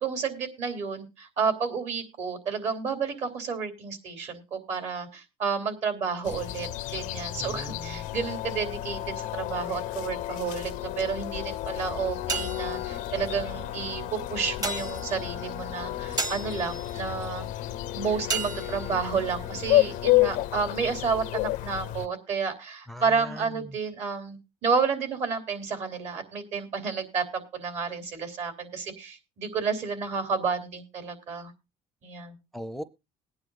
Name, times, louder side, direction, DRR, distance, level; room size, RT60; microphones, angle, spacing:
voice 1, 0.0-17.5 17.9-31.5 32.0-32.4, right 5 dB, 60° right, 6 dB, 3.1 m, -31 dB
sound 1, 6.2-22.1, left 16 dB, 80° left, 0.5 m, -31 dB
voice 2, 7.4-8.1 22.9-23.7 32.5-32.8, equal, ahead, 14 dB, 0.5 m, -39 dB
sound 2, 11.9-20.5, right 3 dB, 25° right, 0.9 m, -37 dB
20.5 x 9.6 x 2.5 m, 0.26 s
cardioid pair, 110°, 13 cm